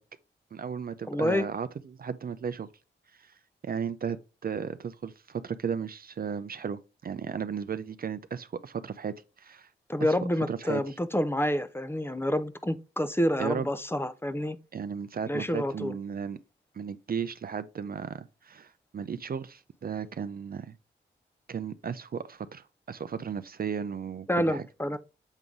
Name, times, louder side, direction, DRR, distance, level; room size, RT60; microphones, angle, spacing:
voice 1, 0.5-2.7 3.2-3.3 3.6-9.7 10.0-10.1 10.5-10.8 13.4-13.7 14.7-16.4 16.7-20.7 21.5-24.6, right 7 dB, 50° right, 0.5 m, -35 dB
voice 2, 1.1-1.4 9.9-14.6 15.2-16.0 24.3-25.0, equal, 10° left, 0.6 m, -28 dB
7.2 x 3.8 x 3.6 m
cardioid pair, 50°, 20 cm